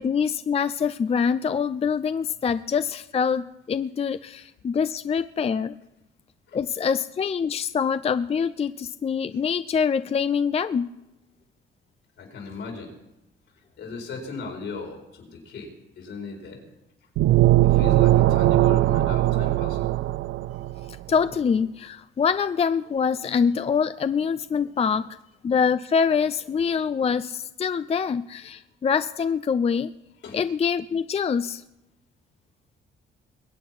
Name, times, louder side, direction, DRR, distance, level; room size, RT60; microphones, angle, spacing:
voice 1, 0.0-5.8 6.5-10.9 20.9-25.0 25.4-29.9 30.3-31.6, left 6 dB, 30° left, 13 dB, 0.4 m, -25 dB
voice 2, 12.2-12.9 13.8-16.6 17.6-19.8 30.2-30.4, left 4 dB, 75° left, 3 dB, 4.6 m, -37 dB
sound 1, 17.2-20.9, right 15 dB, 85° right, 0.4 m, -20 dB
22.0 x 8.3 x 6.0 m, 0.93 s
cardioid pair, 90°, 20 cm